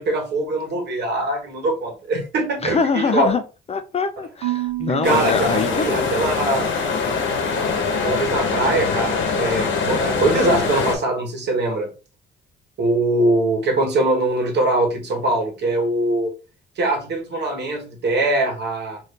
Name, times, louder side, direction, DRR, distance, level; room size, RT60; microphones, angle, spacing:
voice 1, 0.0-3.3 5.0-6.7 7.9-11.9 12.8-16.3 16.8-19.0, right 2 dB, 60° right, 1.1 m, -22 dB
voice 2, 2.6-3.4 3.7-6.1, left 5 dB, 30° left, 0.4 m, -23 dB
Marimba xylophone / Wood, 4.4-6.6, right 17 dB, 85° right, 0.5 m, -30 dB
sound 1, 5.0-11.0, left 5 dB, 70° left, 0.9 m, -23 dB
2.6 x 2.6 x 3.5 m
cardioid pair, 90°, 20 cm